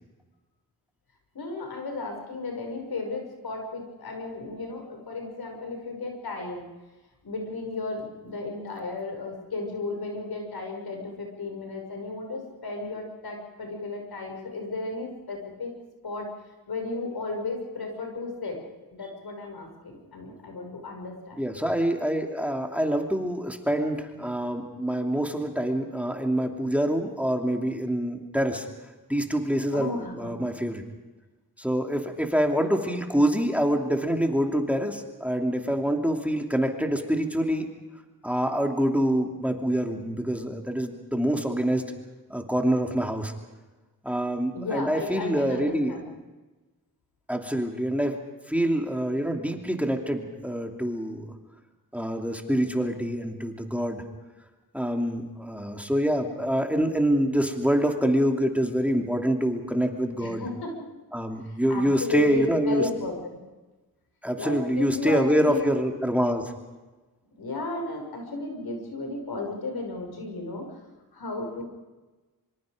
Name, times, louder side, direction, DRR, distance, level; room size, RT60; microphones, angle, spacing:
voice 1, 1.3-6.6 7.2-15.7 16.0-16.3 16.7-18.6 18.9-21.4 29.7-30.3 44.5-46.0 60.2-60.7 61.4-63.4 64.4-65.7 67.3-70.7 71.1-71.6, left 3 dB, 85° left, 2 dB, 6.1 m, -34 dB
voice 2, 21.4-28.7 29.1-30.8 31.6-37.7 38.2-41.9 42.3-43.3 44.0-45.9 47.3-48.2 48.5-51.3 51.9-54.0 54.7-60.5 61.1-62.8 64.2-66.5, equal, 5° right, 3 dB, 2.8 m, -26 dB
26.0 x 25.5 x 5.1 m, 1.2 s
cardioid pair, 75°, 37 cm